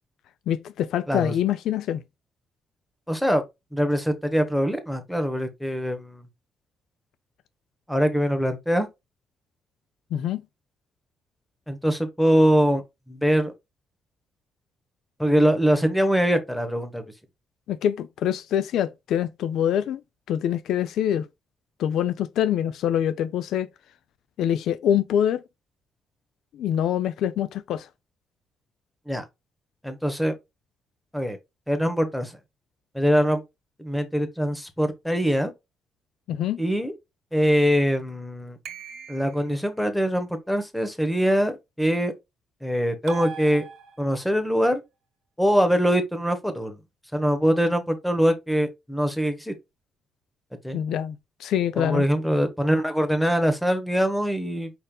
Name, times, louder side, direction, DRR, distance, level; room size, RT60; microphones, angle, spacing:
voice 1, 0.5-2.0 10.1-10.4 17.7-20.0 20.3-21.3 21.8-23.7 24.4-25.4 26.5-27.9 36.3-36.6 50.7-52.1, left 10 dB, 80° left, 0.4 m, -25 dB
voice 2, 3.1-3.4 3.7-6.2 7.9-8.9 11.7-13.5 15.2-17.0 29.1-29.2 29.8-30.3 31.1-31.4 31.7-32.4 32.9-33.4 33.8-35.5 36.6-36.9 37.3-38.6 39.1-41.5 41.8-42.1 42.6-43.6 44.0-44.8 45.4-46.8 47.1-49.5 50.6-50.8 51.8-54.7, equal, 5° left, 1.1 m, -23 dB
sound 1, 38.6-39.6 43.1-44.3, right 6 dB, 75° right, 1.1 m, -40 dB
5.1 x 4.3 x 2.3 m
cardioid pair, 90°, 0 cm